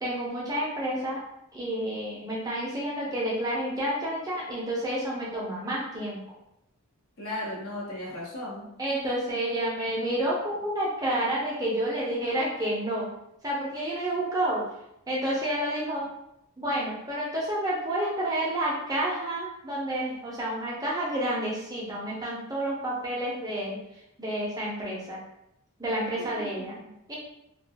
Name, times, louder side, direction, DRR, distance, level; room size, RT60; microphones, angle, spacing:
voice 1, 0.0-1.2 1.5-6.2 8.8-13.1 13.4-14.6 15.1-16.0 16.6-23.8 24.2-25.2 25.8-26.8 27.1-27.2, right 1 dB, 15° right, -5 dB, 0.5 m, -29 dB
voice 2, 7.2-8.7 26.2-26.9, left 1 dB, 70° left, -4 dB, 0.8 m, -36 dB
2.3 x 2.2 x 2.7 m, 0.82 s
head